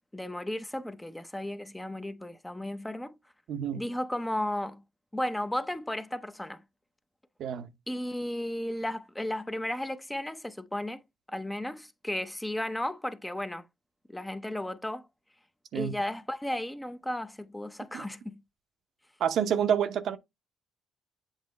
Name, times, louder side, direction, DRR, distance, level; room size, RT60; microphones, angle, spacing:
voice 1, 0.1-3.1 3.7-4.8 5.1-6.6 7.9-11.0 11.3-13.6 14.1-15.1 15.7-18.4, left 1 dB, 10° left, 0.7 m, -34 dB
voice 2, 3.5-3.8 7.4-7.7 15.7-15.9 17.9-18.1 19.2-20.2, right 8 dB, 70° right, 0.9 m, -28 dB
8.1 x 3.0 x 4.2 m
cardioid pair, 90°, 0 cm